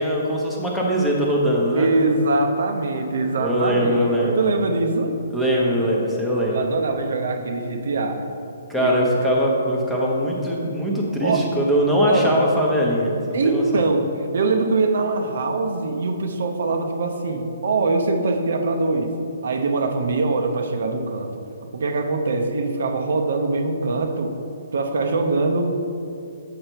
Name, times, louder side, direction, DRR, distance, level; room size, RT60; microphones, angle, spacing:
voice 1, 0.0-1.9 3.4-4.5 5.3-6.7 8.7-13.8, equal, 5° left, -4 dB, 0.9 m, -21 dB
voice 2, 1.7-5.2 6.5-8.3 8.8-9.0 11.2-11.5 12.1-12.4 13.3-19.2 19.4-21.4 21.7-24.3 24.7-25.8, right 3 dB, 70° right, 5 dB, 0.6 m, -23 dB
6.7 x 5.1 x 4.5 m, 2.6 s
hypercardioid pair, 155°, 0 cm